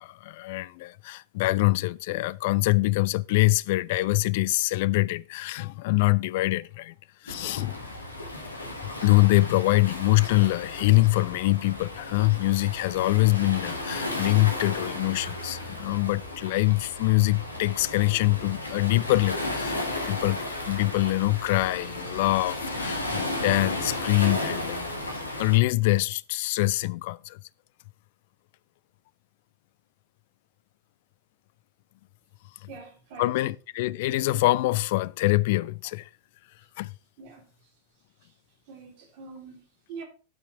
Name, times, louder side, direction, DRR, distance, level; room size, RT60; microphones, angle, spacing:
voice 1, 0.0-6.9 7.2-7.9 9.0-24.9 25.4-27.4 33.2-36.1 36.8-36.9, left 20 dB, 50° left, 0.4 m, -24 dB
Waves surf, 7.3-25.6, left 1 dB, 80° left, 2.1 m, -34 dB
voice 2, 32.7-33.3 37.2-37.4 38.7-40.0, right 5 dB, 50° right, 3.3 m, -44 dB
12.5 x 5.8 x 4.5 m
figure-of-eight pair, 90°, 0 cm